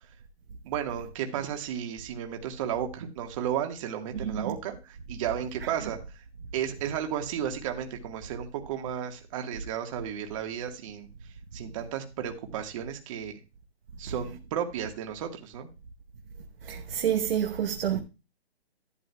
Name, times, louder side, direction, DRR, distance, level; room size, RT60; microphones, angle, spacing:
voice 1, 0.7-6.2 6.5-11.1 11.5-13.3 14.0-15.7 17.9-18.0, right 9 dB, 30° right, 1.5 m, -33 dB
voice 2, 16.7-18.0, right 9 dB, 60° right, 1.0 m, -27 dB
12.5 x 11.5 x 2.3 m
hypercardioid pair, 155°, 33 cm